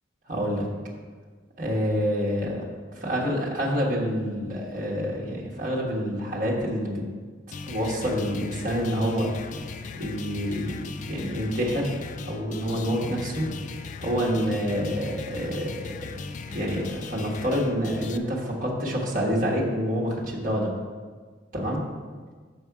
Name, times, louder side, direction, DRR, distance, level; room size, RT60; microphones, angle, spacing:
voice 1, 0.3-0.7 1.6-7.0 7.7-9.3 10.0-12.0 12.3-13.5 14.0-16.0 16.5-20.7 21.5-21.8, equal, 45° right, -4 dB, 1.4 m, -27 dB
sound 1, 7.5-18.2, left 4 dB, 40° left, 0.3 m, -38 dB
7.4 x 5.3 x 4.7 m, 1.5 s
head